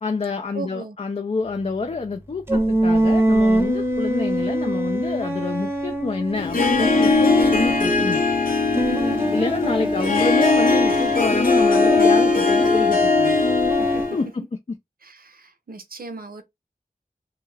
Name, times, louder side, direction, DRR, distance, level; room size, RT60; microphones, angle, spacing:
voice 1, 0.0-8.2 9.3-13.4 14.1-14.8, left 4 dB, 45° left, 0.4 m, -27 dB
voice 2, 0.5-1.0 8.8-9.4 9.8-10.0 13.8-14.1 15.0-16.4, right 3 dB, 80° right, 0.6 m, -36 dB
sound 1, 2.5-8.2 8.7-14.1, right 1 dB, 15° right, 0.7 m, -24 dB
Harp, 6.3-14.2, left 3 dB, 70° left, 0.7 m, -19 dB
2.3 x 2.2 x 3.1 m
wide cardioid pair, 55°, 15 cm